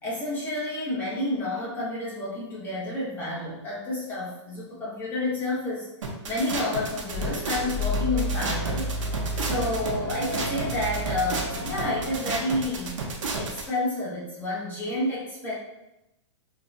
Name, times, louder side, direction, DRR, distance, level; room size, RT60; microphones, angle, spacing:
voice 1, 0.0-5.9 6.3-8.9 9.4-13.0 13.3-15.5, left 1 dB, 10° left, -8 dB, 0.9 m, -30 dB
sound 1, 6.0-13.6, right 3 dB, 90° right, 0.6 m, -32 dB
sound 2, 7.1-12.1, equal, 45° left, 1.0 m, -31 dB
2.6 x 2.2 x 2.6 m, 0.92 s
hypercardioid pair, 145°, 16 cm